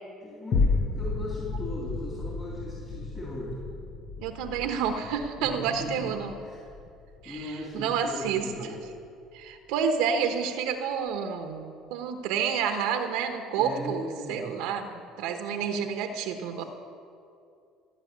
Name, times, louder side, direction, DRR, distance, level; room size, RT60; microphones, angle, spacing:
voice 1, 0.2-3.6 5.4-6.1 6.4-6.6 7.3-8.8 13.6-14.6, left 1 dB, 25° left, -5 dB, 3.5 m, -38 dB
sound 1, 0.5-9.1 9.5-9.6, left 4 dB, 50° left, 1.0 m, -33 dB
voice 2, 4.2-6.4 7.2-8.5 9.3-16.6, right 7 dB, 80° right, 6 dB, 1.0 m, -29 dB
16.5 x 6.4 x 9.4 m, 2.5 s
supercardioid pair, 105°, 0 cm